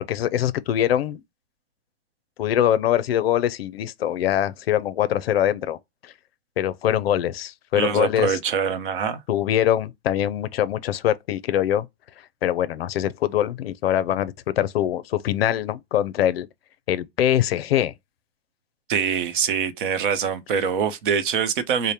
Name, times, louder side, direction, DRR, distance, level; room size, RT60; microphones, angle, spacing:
voice 1, 0.1-1.2 2.4-5.8 6.0-6.1 6.6-8.4 9.3-11.9 12.4-16.5 16.9-17.9, left 11 dB, 60° left, 0.6 m, -23 dB
voice 2, 7.7-9.2 18.9-21.9, right 7 dB, 50° right, 0.8 m, -24 dB
5.0 x 2.1 x 2.8 m
hypercardioid pair, 165°, 34 cm